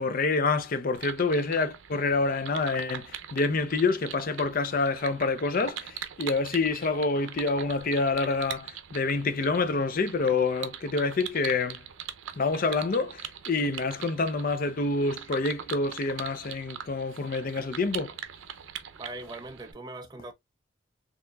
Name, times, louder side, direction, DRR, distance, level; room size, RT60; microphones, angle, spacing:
voice 1, 0.0-11.9 12.4-18.2, left 3 dB, 45° left, 0.5 m, -27 dB
sound 1, 0.9-19.7, right 9 dB, 85° right, 0.5 m, -42 dB
voice 2, 19.0-20.3, right 2 dB, 20° right, 0.4 m, -40 dB
4.4 x 2.9 x 2.2 m
head